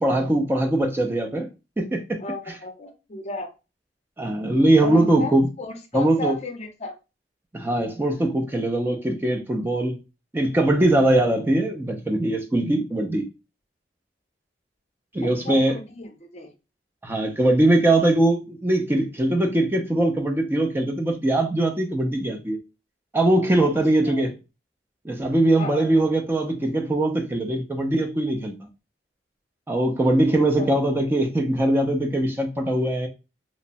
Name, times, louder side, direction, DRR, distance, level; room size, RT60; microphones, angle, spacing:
voice 1, 0.0-1.5 1.8-2.2 4.2-5.5 5.9-6.4 7.5-10.0 10.3-13.2 15.1-15.8 17.0-22.6 23.1-24.3 25.0-28.6 29.7-33.1, right 1 dB, 15° right, 0.3 m, -21 dB
voice 2, 2.2-3.5 4.8-6.9 15.2-16.5 23.6-23.7 24.0-24.3 25.5-26.1 30.6-30.7, left 2 dB, 40° left, 0.5 m, -34 dB
2.9 x 2.0 x 2.6 m
head